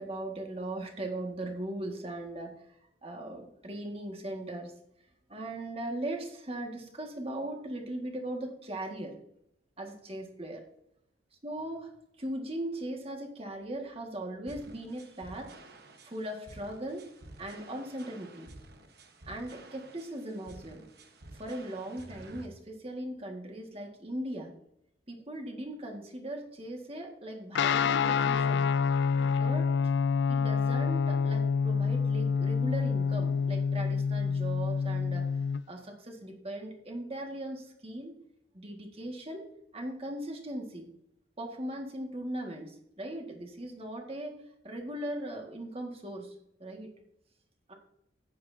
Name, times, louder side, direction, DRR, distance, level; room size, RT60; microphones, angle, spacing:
voice 1, 0.0-4.7 5.3-9.1 9.8-10.6 11.4-11.9 12.2-15.6 16.0-17.0 17.4-18.5 19.3-20.8 21.3-24.5 25.1-28.7 29.2-29.7 30.3-38.2 38.5-39.5 39.7-40.9 41.4-44.4 44.6-46.9 47.7-47.8, right 1 dB, 30° right, 2 dB, 1.8 m, -39 dB
sound 1, 14.5-22.5, right 1 dB, 55° right, 1.3 m, -51 dB
Guitar, 27.5-35.6, left 6 dB, 65° left, 0.3 m, -27 dB
14.0 x 9.8 x 2.8 m, 0.78 s
head